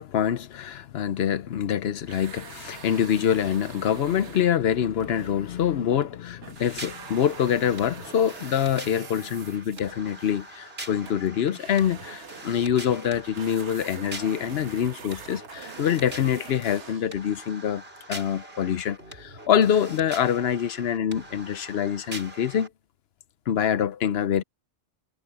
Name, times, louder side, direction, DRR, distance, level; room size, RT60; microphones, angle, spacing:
voice 1, 0.0-17.8 18.1-22.7 23.5-24.4, left 9 dB, 65° left, 0.9 m, -25 dB
sound 1, 2.1-6.2 6.4-17.2, right 6 dB, 80° right, 1.5 m, -44 dB
sound 2, 6.6-22.7, right 2 dB, 60° right, 6.7 m, -43 dB
omnidirectional pair, 1.2 m